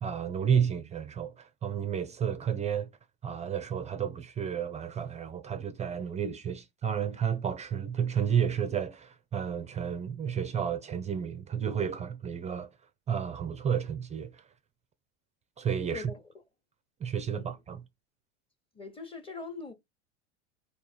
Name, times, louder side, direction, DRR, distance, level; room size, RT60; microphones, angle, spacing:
voice 1, 0.0-2.9 3.2-12.7 13.1-14.5 15.6-16.1 17.0-17.8, right 8 dB, 20° right, 0.4 m, -31 dB
voice 2, 15.9-16.2 17.3-17.5 18.7-19.7, left 3 dB, 15° left, 1.0 m, -41 dB
3.7 x 2.7 x 4.4 m
hypercardioid pair, 95°, 37 cm